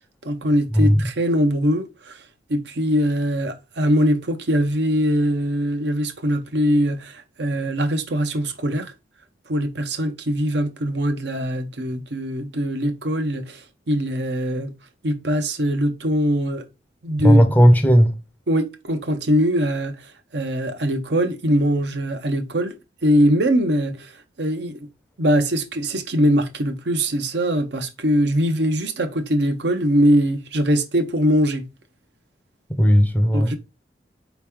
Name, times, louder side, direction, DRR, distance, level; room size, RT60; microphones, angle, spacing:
voice 1, 0.2-2.2 2.5-8.9 9.5-14.7 15.0-16.6 17.0-17.5 18.5-22.7 23.0-24.9 25.2-31.6 33.3-33.6, equal, 70° right, 0.8 m, -22 dB
voice 2, 17.2-18.1 32.7-33.5, equal, 10° left, 0.6 m, -15 dB
4.4 x 3.0 x 3.5 m
head